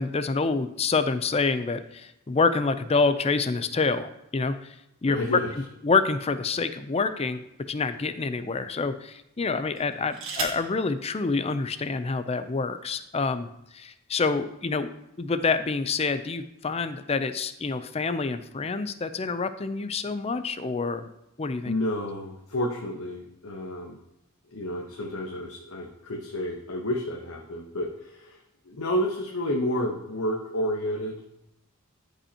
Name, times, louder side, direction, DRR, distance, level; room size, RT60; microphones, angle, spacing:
voice 1, 0.0-4.7 5.0-5.4 5.8-13.5 13.7-14.9 15.2-21.1 21.4-21.7, left 4 dB, 30° left, 11 dB, 0.5 m, -27 dB
voice 2, 5.1-5.5 21.6-24.0 24.5-28.4 28.6-31.4, equal, 85° left, 0 dB, 1.0 m, -30 dB
sound 1, 6.0-7.2 7.9-8.1 9.7-10.7 11.9-12.0 12.3-12.7, right 5 dB, 70° right, 1.6 m, -37 dB
13.0 x 5.4 x 2.9 m, 0.87 s
head